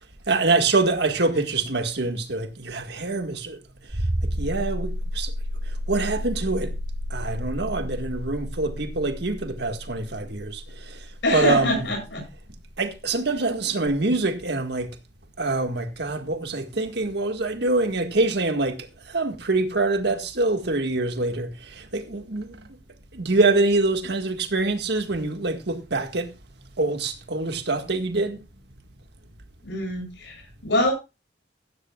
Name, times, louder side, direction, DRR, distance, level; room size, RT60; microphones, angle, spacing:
voice 1, 0.3-3.6 3.9-5.3 5.7-6.7 7.1-11.9 12.8-15.0 15.4-22.6 23.1-26.3 26.8-28.4, right 3 dB, 65° right, 1.8 m, -25 dB
sound 1, 3.9-12.4 13.9-14.0, equal, 90° right, 4.3 m, -31 dB
voice 2, 11.2-12.2 29.6-30.9, left 1 dB, 75° left, 7.9 m, -25 dB
15.5 x 13.0 x 2.4 m
head